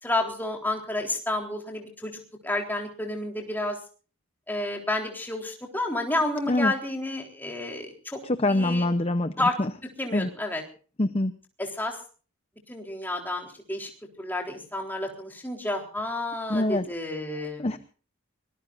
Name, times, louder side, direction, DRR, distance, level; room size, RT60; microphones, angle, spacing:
voice 1, 0.0-3.8 4.5-8.2 8.5-8.9 9.4-9.6 10.0-10.6 11.6-12.0 12.7-13.9 14.2-17.8, left 2 dB, 10° left, 1 dB, 3.7 m, -30 dB
voice 2, 8.2-9.7 10.1-10.3 11.0-11.3 16.5-16.9 17.6-17.8, left 1 dB, 25° left, 11 dB, 0.7 m, -25 dB
24.5 x 20.0 x 2.6 m, 0.39 s
head